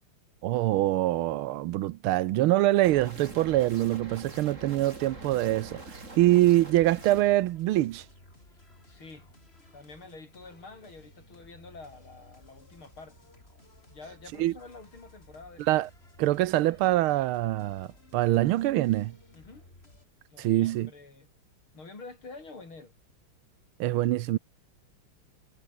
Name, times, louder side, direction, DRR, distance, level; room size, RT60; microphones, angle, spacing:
voice 1, 0.4-8.0 14.4-14.5 15.6-15.9 16.2-19.1 20.4-20.9 23.8-24.4, right 15 dB, 90° right, 1.6 m, -24 dB
sound 1, 2.8-7.2, right 2 dB, 35° right, 4.5 m, -44 dB
sound 2, 4.7-20.0, left 2 dB, 30° left, 5.1 m, -56 dB
voice 2, 8.9-9.3 9.7-13.2 13.9-15.7 19.3-19.7 20.3-21.3 21.7-23.0, left 3 dB, 80° left, 6.0 m, -48 dB
omnidirectional pair, 2.3 m